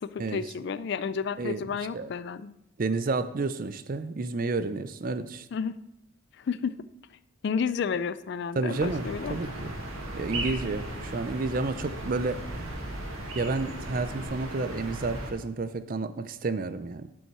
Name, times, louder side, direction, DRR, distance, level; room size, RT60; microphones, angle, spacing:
voice 1, 0.0-2.5 5.5-5.8 6.3-6.8 7.4-9.4, left 6 dB, 55° left, 14 dB, 0.3 m, -31 dB
voice 2, 1.4-2.1 2.8-5.5 8.6-9.7 10.1-12.7 13.3-17.1, right 3 dB, 40° right, 13 dB, 0.5 m, -31 dB
sound 1, 8.7-15.3, right 1 dB, 90° right, 1.8 m, -36 dB
10.5 x 5.5 x 4.7 m, 0.87 s
head